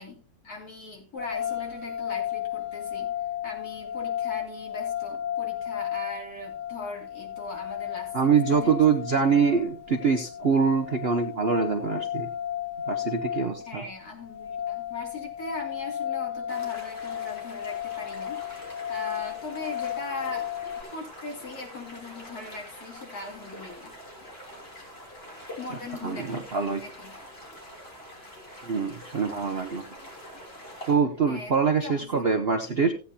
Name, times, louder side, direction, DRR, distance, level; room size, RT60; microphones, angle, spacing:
voice 1, 0.0-3.2 3.4-8.7 9.1-9.2 13.6-20.5 20.9-23.9 25.6-26.4 26.8-27.2 31.3-32.1, left 2 dB, 45° left, 0 dB, 3.3 m, -40 dB
sound 1, 1.2-20.8, left 10 dB, 60° right, 1.8 m, -34 dB
voice 2, 8.1-12.3 12.9-13.8 26.0-26.8 28.6-29.9 30.9-32.9, right 6 dB, 85° right, 5 dB, 0.5 m, -24 dB
winter river night, 16.5-30.9, equal, 30° left, 3.4 m, -45 dB
15.5 x 9.1 x 2.8 m, 0.37 s
omnidirectional pair, 2.2 m